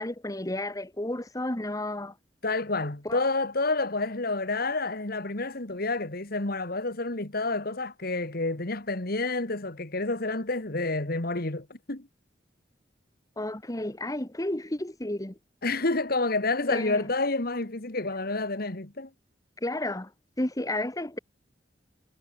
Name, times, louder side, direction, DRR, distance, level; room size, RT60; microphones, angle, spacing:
voice 1, 0.0-2.1 3.0-3.2 13.4-15.4 16.7-17.0 19.6-20.1 20.4-21.2, left 1 dB, 20° left, 1.5 m, -32 dB
voice 2, 2.4-12.1 15.6-19.1, left 3 dB, 55° left, 2.1 m, -29 dB
head